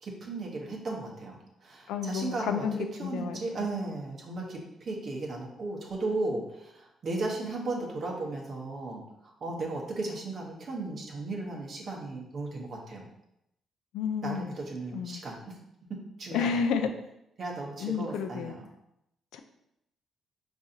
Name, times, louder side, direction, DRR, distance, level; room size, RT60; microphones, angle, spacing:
voice 1, 0.0-13.1 14.2-15.6 15.9-16.7 17.4-18.6, right 2 dB, 50° right, -2 dB, 0.8 m, -36 dB
voice 2, 1.9-3.4 13.9-14.6 14.9-15.2 16.3-17.0 17.8-18.5 19.3-19.4, left 6 dB, 90° left, 7 dB, 0.3 m, -31 dB
4.6 x 2.6 x 2.7 m, 0.83 s
cardioid pair, 90°, 0 cm